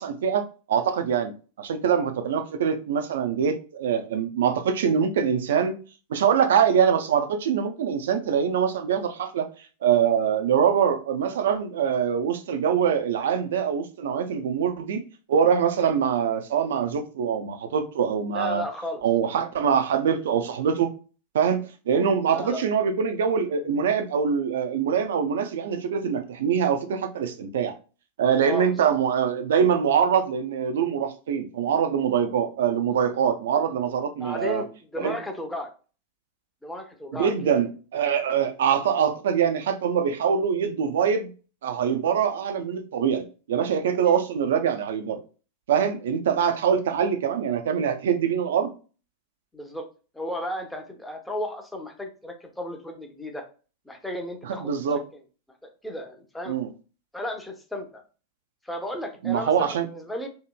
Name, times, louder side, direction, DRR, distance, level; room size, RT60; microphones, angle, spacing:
voice 1, 0.0-5.7 6.1-9.5 9.8-15.0 15.3-18.6 19.0-20.9 21.3-27.7 28.2-34.6 35.0-35.2 37.1-41.3 41.6-45.2 45.7-48.7 54.4-55.0 56.5-56.7 59.2-59.9, right 7 dB, 60° right, 0.4 m, -24 dB
voice 2, 18.3-19.0 19.4-19.5 22.3-22.6 28.5-28.9 34.2-35.7 36.6-37.6 44.0-44.2 49.5-49.9 50.1-53.4 53.9-55.0 55.6-56.6 57.1-58.0 58.6-60.3, left 1 dB, 5° left, 0.6 m, -34 dB
2.8 x 2.7 x 2.2 m
figure-of-eight pair, 90°, 0 cm